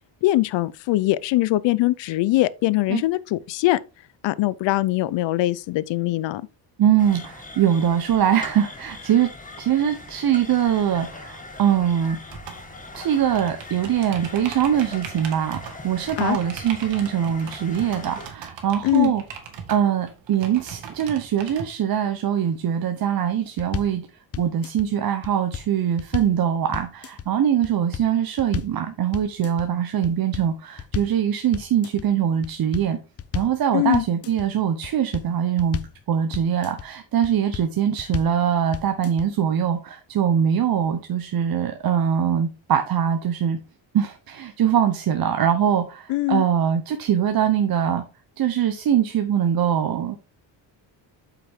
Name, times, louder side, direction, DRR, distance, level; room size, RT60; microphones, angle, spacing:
voice 1, 0.2-3.8 4.2-6.4 16.2-16.4 18.8-19.1 33.7-34.1 46.1-46.4, left 17 dB, 75° left, 0.6 m, -22 dB
voice 2, 6.8-9.3 9.6-12.2 12.9-19.2 19.7-24.0 24.4-33.0 33.3-35.8 36.1-43.6 43.9-48.0 48.4-50.2, right 9 dB, 50° right, 1.0 m, -22 dB
sound 1, 7.0-18.3, left 2 dB, 15° left, 1.6 m, -41 dB
sound 2, 12.3-21.6, right 7 dB, 75° right, 2.3 m, -39 dB
sound 3, 23.6-24.0 24.3-24.9 25.2-26.4 26.7-27.3 27.6-28.1 28.4-28.8 29.1-29.7 30.0-31.2 31.5-32.1 32.4-33.6 33.9-34.5 34.8-36.0 36.3-36.9 37.2-37.7 38.0-38.4 38.7-39.3, left 9 dB, 35° left, 0.6 m, -33 dB
8.3 x 5.8 x 3.6 m
cardioid pair, 120°, 45 cm